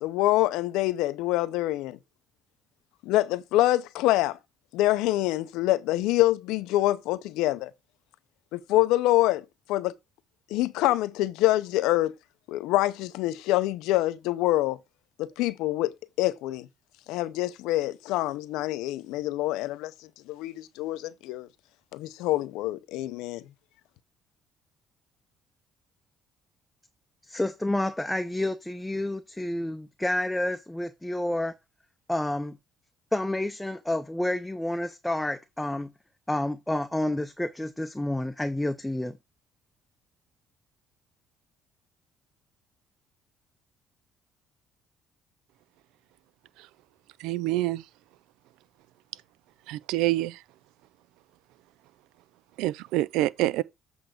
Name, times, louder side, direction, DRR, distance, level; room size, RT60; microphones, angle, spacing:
voice 1, 0.0-2.0 3.0-4.4 4.7-7.7 8.5-9.9 10.5-12.1 12.5-14.8 15.2-16.7 17.1-19.9 20.3-21.5 21.9-23.4, left 16 dB, 85° left, 0.6 m, -26 dB
voice 2, 27.2-31.5 32.1-32.6 33.1-35.9 36.3-39.2, left 1 dB, 10° left, 0.7 m, -29 dB
voice 3, 47.2-47.8 49.7-50.4 52.6-53.6, right 16 dB, 85° right, 0.4 m, -26 dB
7.9 x 3.4 x 6.5 m
cardioid pair, 85°, 0 cm